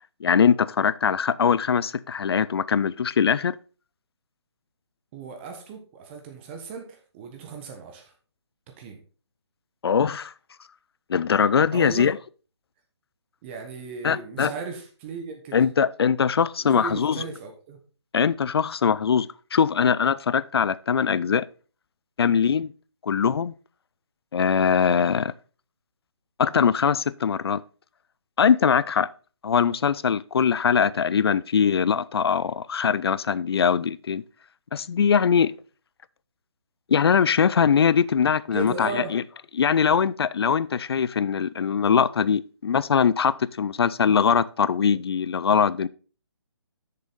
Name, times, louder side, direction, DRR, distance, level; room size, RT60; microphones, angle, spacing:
voice 1, 0.2-3.6 9.8-10.3 11.1-12.2 14.0-14.5 15.5-17.2 18.1-21.5 22.2-22.7 23.0-23.5 24.3-25.3 26.4-27.6 28.4-29.1 29.4-34.2 34.7-35.5 36.9-39.2 39.5-45.9, left 7 dB, 60° left, 0.4 m, -22 dB
voice 2, 5.1-8.1 8.8-9.0 11.7-12.1 13.4-15.7 16.6-17.8 38.5-39.2, right 5 dB, 25° right, 1.2 m, -36 dB
8.0 x 6.7 x 4.0 m
figure-of-eight pair, 145°, 15 cm